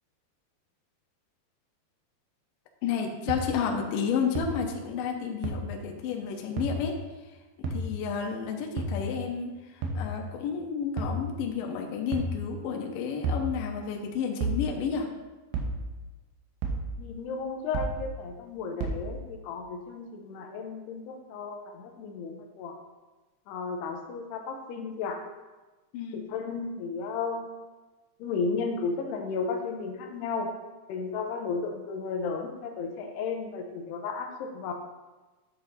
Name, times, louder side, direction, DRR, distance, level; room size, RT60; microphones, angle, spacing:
voice 1, 2.8-7.0 7.6-15.1 25.9-26.3, left 6 dB, 70° left, 2 dB, 2.1 m, -31 dB
sound 1, 3.3-3.4 4.4-4.5 5.4-5.5 6.6-6.7 7.6-7.8 8.8-9.0 9.8-10.0 11.0-11.2 12.1-12.3 13.2-13.5 14.4-14.6 15.5-15.8 16.6-16.9 17.8-18.0 18.8-19.0, right 3 dB, 80° right, 3.1 m, -30 dB
voice 2, 17.0-22.7 23.5-25.2 26.3-27.5 28.2-30.5 30.9-34.7, left 4 dB, 90° left, 3 dB, 2.8 m, -34 dB
10.5 x 7.6 x 2.7 m, 1.2 s
omnidirectional pair, 4.8 m